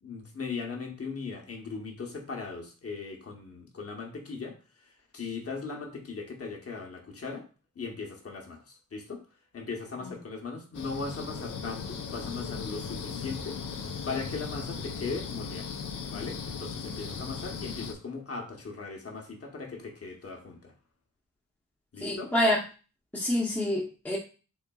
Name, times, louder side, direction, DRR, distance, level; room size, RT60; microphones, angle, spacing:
voice 1, 0.0-4.6 5.1-7.4 7.8-9.2 9.5-15.7 16.0-20.7 21.9-22.3, left 4 dB, 45° left, 1 dB, 0.9 m, -38 dB
sound 1, 10.7-17.9, left 5 dB, 70° left, 0.5 m, -37 dB
voice 2, 22.0-22.6 23.1-24.2, left 1 dB, 5° left, -5 dB, 0.7 m, -27 dB
3.9 x 3.6 x 2.3 m, 0.35 s
wide cardioid pair, 115°, 33 cm